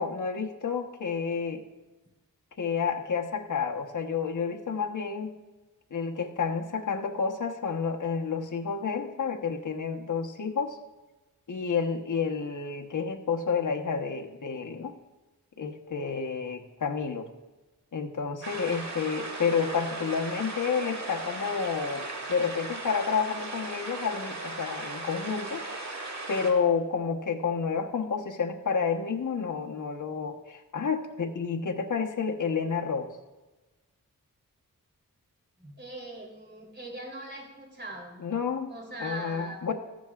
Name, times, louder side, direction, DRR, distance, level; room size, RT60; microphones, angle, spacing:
voice 1, 0.0-1.6 2.6-5.3 5.9-10.8 11.5-15.0 15.6-17.3 17.9-25.6 26.3-33.1 38.2-38.7 39.0-39.7, left 5 dB, 60° left, 2 dB, 1.2 m, -30 dB
sound 1, 18.4-26.5, right 2 dB, 50° right, 2.2 m, -37 dB
voice 2, 35.6-38.2 38.7-39.7, right 2 dB, 30° right, -1 dB, 3.5 m, -41 dB
15.0 x 12.5 x 2.5 m, 1.2 s
wide cardioid pair, 75°, 35 cm